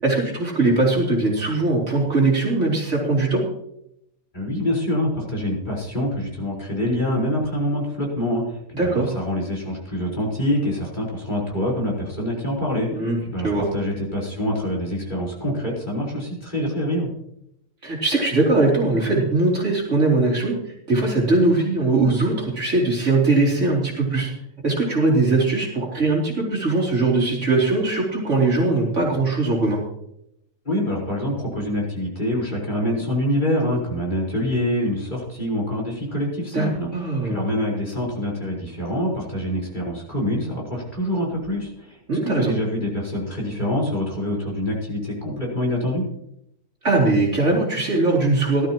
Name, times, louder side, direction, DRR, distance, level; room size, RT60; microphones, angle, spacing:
voice 1, 0.0-3.4 8.7-9.1 12.9-13.2 13.4-13.7 17.8-20.5 20.9-24.3 24.6-29.8 36.5-37.4 42.1-42.5 46.8-48.7, right 2 dB, 55° right, -3 dB, 3.7 m, -20 dB
voice 2, 4.3-17.1 30.6-36.9 37.2-42.0 42.2-46.1, left 1 dB, 35° left, -4 dB, 4.7 m, -25 dB
17.5 x 13.0 x 3.0 m, 0.78 s
omnidirectional pair, 1.5 m